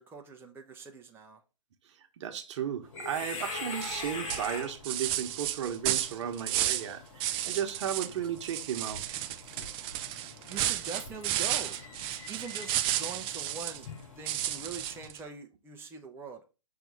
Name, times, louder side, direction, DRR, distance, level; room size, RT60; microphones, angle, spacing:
voice 1, 0.0-1.4 10.5-11.8 12.3-13.9 14.2-16.4, right 4 dB, 10° right, 0.8 m, -43 dB
voice 2, 2.2-9.0, right 9 dB, 60° right, 1.2 m, -34 dB
sound 1, 2.8-15.1, left 3 dB, 50° left, 3.7 m, -44 dB
sound 2, 3.8-4.0 4.3-6.9 7.2-8.1 8.4-13.8 14.3-15.2, right 13 dB, 30° right, 0.5 m, -32 dB
6.0 x 3.5 x 5.3 m
hypercardioid pair, 125°, 17 cm